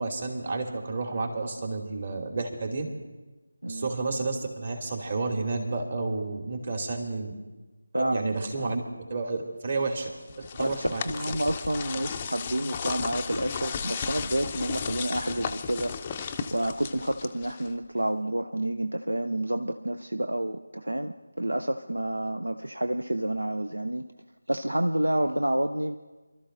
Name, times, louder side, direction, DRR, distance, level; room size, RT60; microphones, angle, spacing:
voice 1, 0.0-2.9 3.7-7.3 7.9-8.8 9.1-10.1 10.6-11.0, right 3 dB, 40° right, 2 dB, 2.5 m, -31 dB
voice 2, 3.6-3.9 7.9-8.7 10.5-24.1 24.5-26.0, right 1 dB, 80° right, 7 dB, 0.7 m, -29 dB
sound 1, 10.0-17.8, left 6 dB, 20° left, 0.5 m, -35 dB
29.0 x 13.0 x 2.6 m, 1.2 s
figure-of-eight pair, 160°, 0 cm